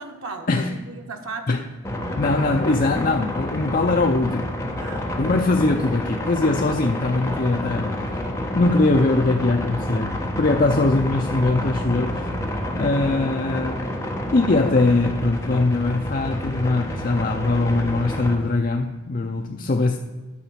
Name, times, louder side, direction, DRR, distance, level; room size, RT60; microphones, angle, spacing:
voice 1, 0.0-1.7 2.6-3.3 4.8-5.3 19.4-19.7, right 3 dB, 90° right, 4 dB, 1.2 m, -38 dB
sound 1, 1.8-18.4, left 1 dB, 15° left, 1.2 m, -29 dB
voice 2, 2.2-4.5 5.2-8.0 8.5-12.3 12.8-13.9 14.3-20.0, left 2 dB, 40° left, 3 dB, 0.5 m, -21 dB
9.9 x 7.1 x 5.8 m, 1.3 s
head